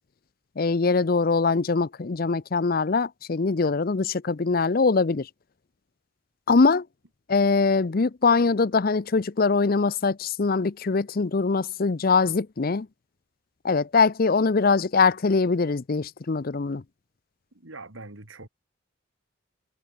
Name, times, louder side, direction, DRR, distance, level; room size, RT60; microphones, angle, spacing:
voice 1, 0.6-5.3 6.5-6.9 7.3-12.9 13.6-16.8, left 4 dB, 45° left, 0.6 m, -22 dB
voice 2, 17.5-18.5, right 3 dB, 80° right, 2.9 m, -42 dB
head